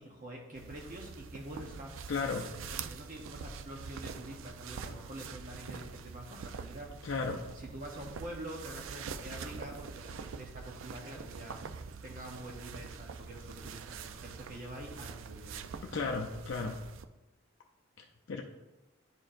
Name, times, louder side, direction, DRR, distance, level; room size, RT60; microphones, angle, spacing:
voice 1, 0.0-1.9 2.7-6.9 7.5-11.6 12.0-15.7, right 1 dB, 40° right, -1 dB, 0.8 m, -46 dB
sound 1, 0.6-17.1, right 5 dB, 65° right, 0.3 m, -45 dB
voice 2, 2.1-2.5 7.0-7.4 15.8-16.8 18.3-18.4, left 4 dB, 60° left, 1 dB, 0.5 m, -34 dB
11.0 x 4.4 x 2.5 m, 1.1 s
head